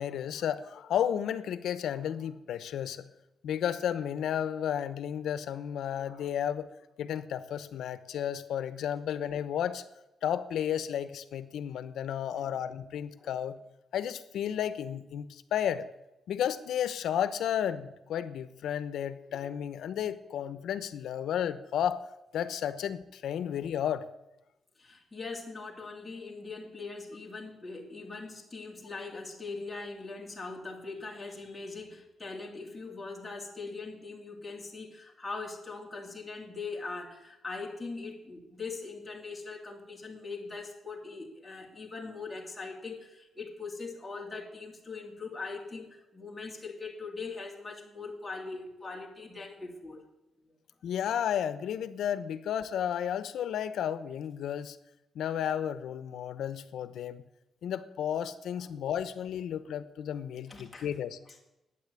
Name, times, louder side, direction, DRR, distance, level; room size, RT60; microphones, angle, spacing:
voice 1, 0.0-3.0 3.4-6.7 7.0-9.8 10.2-13.6 13.9-15.9 16.3-22.0 22.3-24.0 50.8-54.8 55.1-57.2 57.6-61.2, left 9 dB, 85° left, 13 dB, 0.9 m, -33 dB
voice 2, 24.8-50.0 58.6-58.8 60.1-60.9 61.3-61.4, left 3 dB, 10° left, -1 dB, 2.8 m, -41 dB
12.0 x 9.5 x 8.2 m, 0.92 s
wide cardioid pair, 155°, 0 cm